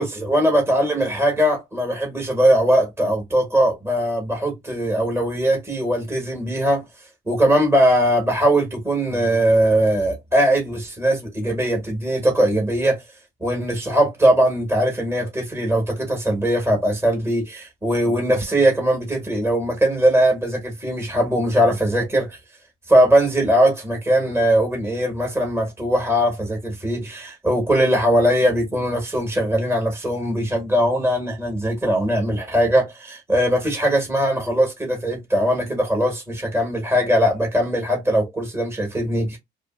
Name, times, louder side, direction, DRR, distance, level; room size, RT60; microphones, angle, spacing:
voice 1, 0.0-6.8 7.3-13.0 13.4-22.4 22.9-39.4, right 1 dB, 10° right, 1.2 m, -20 dB
2.8 x 2.4 x 2.3 m
cardioid pair, 90°, 20 cm